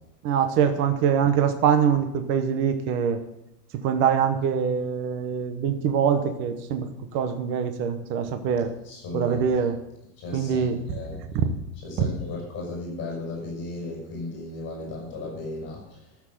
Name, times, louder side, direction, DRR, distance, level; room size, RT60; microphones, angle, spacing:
voice 1, 0.2-3.2 3.8-8.7 9.1-9.8 10.3-11.0 11.3-11.4 12.0-12.1, right 7 dB, 25° right, 8 dB, 0.8 m, -24 dB
voice 2, 8.9-9.4 10.2-11.2 11.8-15.8, left 2 dB, 25° left, -2 dB, 5.7 m, -35 dB
12.5 x 7.3 x 7.6 m, 0.89 s
supercardioid pair, 170°, 46 cm